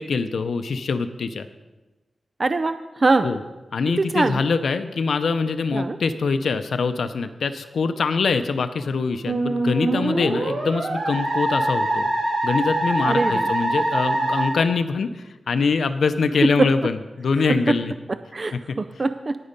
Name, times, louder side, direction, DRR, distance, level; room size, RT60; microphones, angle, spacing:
voice 1, 0.0-1.5 3.2-3.4 3.7-12.1 12.4-17.9, left 4 dB, 80° left, 9 dB, 0.6 m, -24 dB
voice 2, 2.4-3.3 4.0-4.4 5.7-6.0 13.1-13.5 16.6-16.7 18.3-19.4, right 3 dB, 35° right, 11 dB, 0.4 m, -22 dB
Musical instrument, 9.3-14.5, right 1 dB, 65° right, 2.5 m, -23 dB
9.9 x 9.6 x 5.2 m, 1.1 s
wide cardioid pair, 115°, 0 cm